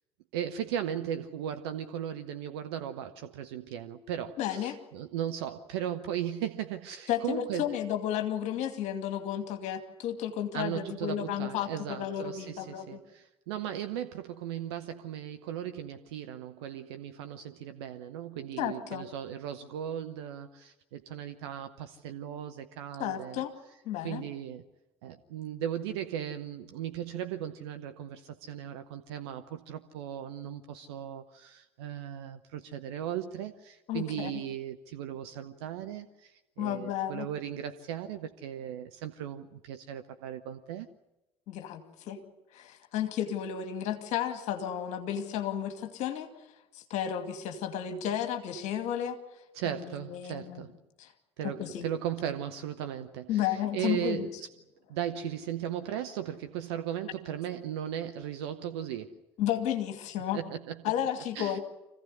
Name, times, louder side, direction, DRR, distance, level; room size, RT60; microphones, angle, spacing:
voice 1, 0.3-7.8 10.5-23.4 24.0-24.6 25.0-40.9 49.5-50.7 51.4-54.5 54.9-59.2 60.3-60.9 61.3-61.6, right 10 dB, 70° right, 0.9 m, -37 dB
voice 2, 4.4-4.8 7.1-13.0 18.6-19.1 23.0-23.5 23.8-24.2 33.9-34.3 36.6-37.3 41.5-42.2 42.5-46.3 46.7-49.2 49.6-50.6 51.0-51.1 51.4-51.9 53.3-54.2 59.4-60.4 60.8-61.6, left 10 dB, 60° left, 2.4 m, -32 dB
25.5 x 16.5 x 9.7 m
figure-of-eight pair, 55°, 14 cm